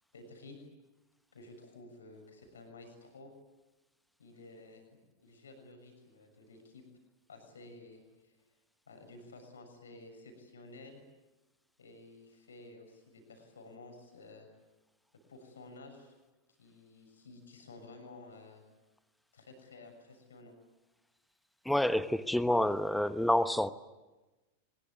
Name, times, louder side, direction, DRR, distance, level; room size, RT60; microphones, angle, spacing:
voice 1, 0.1-0.6 1.3-3.3 4.2-4.8 5.2-6.8 7.3-8.4 8.9-11.0 11.8-14.5 15.3-16.1 16.6-18.6 19.3-20.5, left 2 dB, 70° left, 5 dB, 6.8 m, -53 dB
voice 2, 21.7-23.7, left 1 dB, 5° left, 14 dB, 1.1 m, -28 dB
24.5 x 22.0 x 9.5 m, 1.1 s
figure-of-eight pair, 90°, 0 cm